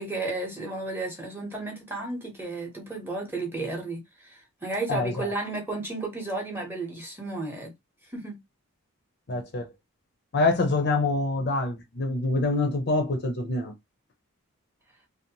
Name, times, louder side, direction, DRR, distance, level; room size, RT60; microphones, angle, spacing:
voice 1, 0.0-7.7 8.1-8.4, right 2 dB, 10° right, 0.8 m, -33 dB
voice 2, 4.9-5.3 9.3-9.7 10.3-13.7, left 2 dB, 50° left, 0.5 m, -26 dB
2.6 x 2.0 x 2.8 m
head